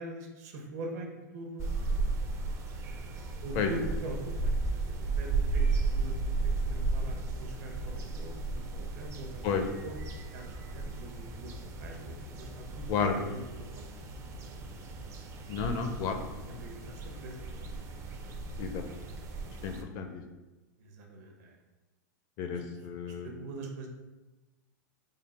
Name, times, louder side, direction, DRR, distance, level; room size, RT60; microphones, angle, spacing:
voice 1, 0.0-1.7 3.4-6.4 6.7-13.4 13.7-13.8 16.6-17.7 20.8-21.6 22.5-22.6 23.0-23.9, right 1 dB, 60° right, 2 dB, 0.8 m, -43 dB
sound 1, 1.6-19.8, right 3 dB, 25° right, 0.4 m, -35 dB
voice 2, 15.5-16.2 18.6-18.8 19.6-20.2 22.4-23.3, left 6 dB, 40° left, 5 dB, 0.4 m, -31 dB
3.7 x 2.0 x 4.0 m, 1.1 s
hypercardioid pair, 135°, 10 cm